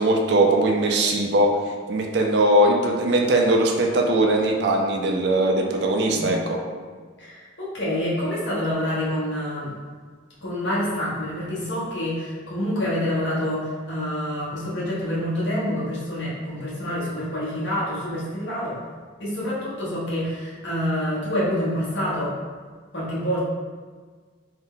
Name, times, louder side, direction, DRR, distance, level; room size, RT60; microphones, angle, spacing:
voice 1, 0.0-1.5 1.9-6.4, right 1 dB, 60° right, 1 dB, 0.4 m, -20 dB
voice 2, 7.2-9.7 10.4-18.8 19.2-22.4 22.9-23.4, equal, 65° left, -8 dB, 1.0 m, -27 dB
2.7 x 2.2 x 3.6 m, 1.5 s
head